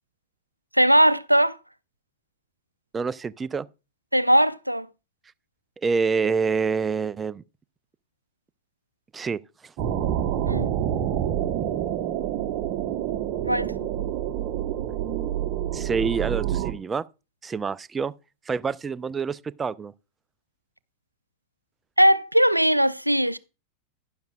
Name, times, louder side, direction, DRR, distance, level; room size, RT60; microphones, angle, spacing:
voice 1, 0.7-1.6 4.1-4.9 10.5-10.7 13.4-13.7 22.0-23.4, equal, 90° right, 0.4 m, -19 dB
voice 2, 2.9-3.7 5.8-7.4 9.1-9.4 15.7-17.0 17.4-18.1 18.5-19.9, right 5 dB, 15° right, 0.4 m, -27 dB
sound 1, 9.8-16.7, right 10 dB, 40° right, 1.2 m, -27 dB
12.0 x 10.5 x 2.4 m
figure-of-eight pair, 90°, 0 cm